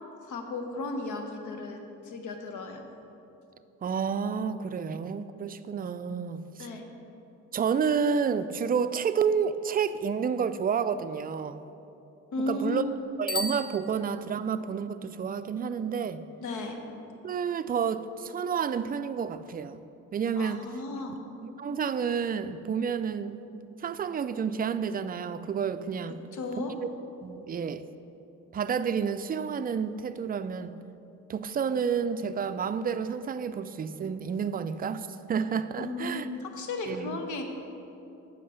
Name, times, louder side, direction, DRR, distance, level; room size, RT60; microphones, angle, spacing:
voice 1, 0.2-1.8 2.0-2.8 6.6-6.8 12.3-12.9 16.4-16.8 20.4-21.2 26.3-26.7 35.8-37.4, left 3 dB, 80° left, 4 dB, 1.1 m, -34 dB
voice 2, 3.8-6.7 7.5-11.6 12.5-12.8 13.2-16.2 17.2-19.8 20.1-20.7 21.4-23.4 23.8-26.2 26.8-26.9 27.2-27.8 28.5-30.7 31.3-36.3 36.9-37.2, right 6 dB, 30° right, 11 dB, 0.4 m, -30 dB
Bicycle bell, 13.2-14.6, left 1 dB, 30° left, 0.8 m, -35 dB
7.7 x 5.8 x 6.6 m, 2.9 s
cardioid pair, 90°, 30 cm